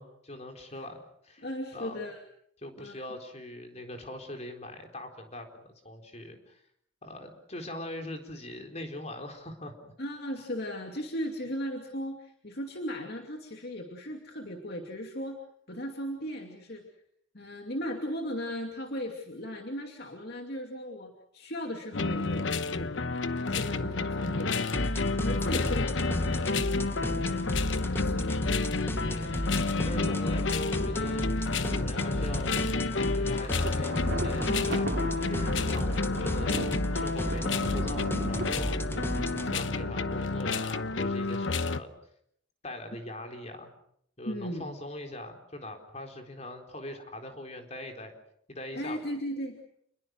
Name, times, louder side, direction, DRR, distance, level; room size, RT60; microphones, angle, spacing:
voice 1, 0.0-1.5 1.7-2.0 2.6-6.6 7.0-9.9 29.1-29.3 29.8-31.3 31.6-32.6 32.9-36.6 36.9-39.1 39.4-41.9 42.6-43.7 44.2-48.1 48.5-49.0, left 1 dB, 35° left, 4 dB, 4.2 m, -41 dB
voice 2, 1.4-2.2 2.8-3.0 10.0-15.4 15.7-16.8 17.3-22.9 23.4-24.7 25.2-28.4 29.9-30.2 44.2-44.7 48.7-49.7, equal, 55° left, 3 dB, 2.6 m, -37 dB
sound 1, 21.9-41.8, left 3 dB, 75° left, 1.0 m, -30 dB
sound 2, 24.7-39.5, equal, 10° left, 1.0 m, -34 dB
Thunder, 33.3-40.6, right 1 dB, 60° right, 2.5 m, -38 dB
29.0 x 21.5 x 6.4 m, 0.70 s
head